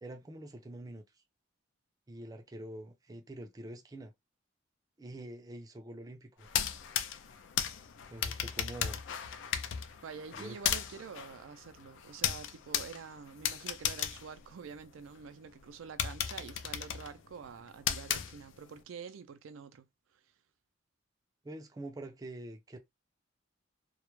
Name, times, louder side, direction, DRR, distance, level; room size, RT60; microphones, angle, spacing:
voice 1, 0.0-1.0 2.1-4.1 5.0-6.5 8.1-9.0 10.3-10.6 21.4-22.8, right 1 dB, 20° right, 0.4 m, -45 dB
sound 1, 6.4-15.2 15.6-15.7 16.0-18.8, left 9 dB, 70° left, 0.4 m, -36 dB
voice 2, 10.0-19.9, right 6 dB, 85° right, 0.4 m, -47 dB
2.2 x 2.0 x 3.0 m
head